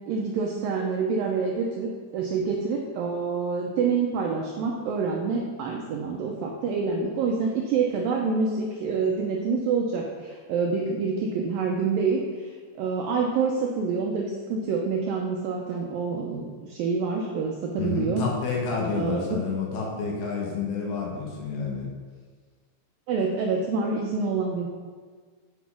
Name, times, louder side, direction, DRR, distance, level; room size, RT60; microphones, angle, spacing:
voice 1, 0.1-18.3 18.9-19.4 23.1-24.7, right 5 dB, 85° right, 0 dB, 2.0 m, -27 dB
voice 2, 17.8-21.9, left 4 dB, 70° left, -2 dB, 3.1 m, -29 dB
8.3 x 6.2 x 5.8 m, 1.5 s
omnidirectional pair, 5.1 m